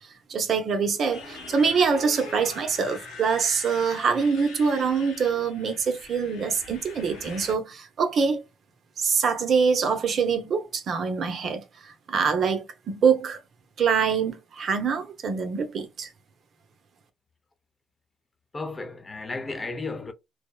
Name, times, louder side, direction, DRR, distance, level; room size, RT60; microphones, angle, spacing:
voice 1, 0.3-8.4 9.0-13.4 13.8-16.1, right 5 dB, 55° right, 0.7 m, -25 dB
Motorcycle, 1.0-7.5, left 3 dB, 85° left, 1.1 m, -42 dB
voice 2, 18.5-20.1, left 3 dB, 25° left, 0.6 m, -33 dB
2.7 x 2.0 x 2.2 m
supercardioid pair, 70°, 0 cm